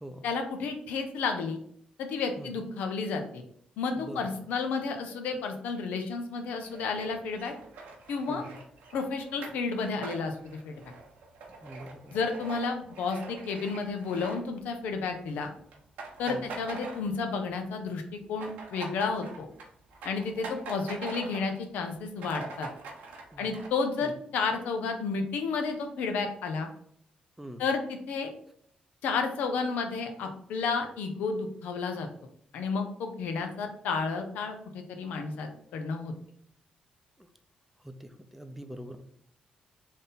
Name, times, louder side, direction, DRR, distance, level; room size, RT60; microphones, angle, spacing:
voice 1, 0.2-1.6 2.0-3.4 3.8-7.5 8.1-8.4 8.9-10.4 10.6-10.8 12.1-15.5 16.2-19.5 20.0-22.7 23.4-26.7 27.6-28.3 29.0-32.1 32.5-36.1, left 4 dB, 85° left, 5 dB, 0.6 m, -31 dB
voice 2, 4.0-4.3 8.3-8.6 11.6-12.2 16.3-16.5 23.3-23.5 24.0-24.1 27.4-27.6 37.2-37.3 37.8-39.0, equal, 5° right, 8 dB, 0.5 m, -43 dB
sound 1, 6.6-15.0 15.3-15.5 15.7-17.5 17.8-21.6 21.9-22.0 22.2-23.7, right 3 dB, 90° right, 0.9 m, -44 dB
3.5 x 2.7 x 3.9 m, 0.67 s
cardioid pair, 70°, 3 cm